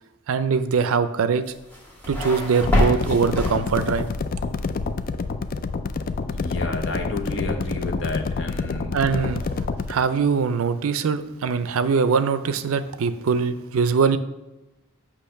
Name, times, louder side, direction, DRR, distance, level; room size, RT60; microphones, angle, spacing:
voice 1, 0.3-1.4 2.1-4.1 8.9-9.4 9.9-14.2, right 5 dB, 65° right, 11 dB, 0.4 m, -22 dB
sound 1, 1.5-4.1, left 1 dB, 10° left, 1.4 m, -26 dB
sound 2, 2.6-9.9, left 4 dB, 40° left, 0.3 m, -28 dB
voice 2, 6.3-9.7, left 2 dB, 55° left, 5 dB, 0.9 m, -31 dB
8.4 x 2.9 x 5.7 m, 1.0 s
head